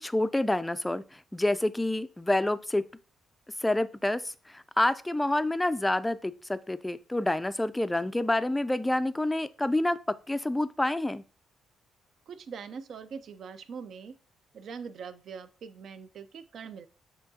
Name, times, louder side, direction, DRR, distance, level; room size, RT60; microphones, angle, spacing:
voice 1, 0.0-2.8 3.6-10.0 10.3-11.2, left 1 dB, 10° left, 14 dB, 0.3 m, -28 dB
voice 2, 12.3-14.1 14.5-16.9, right 6 dB, 60° right, 12 dB, 0.4 m, -42 dB
6.9 x 2.8 x 2.7 m, 0.36 s
cardioid pair, 90°, 0 cm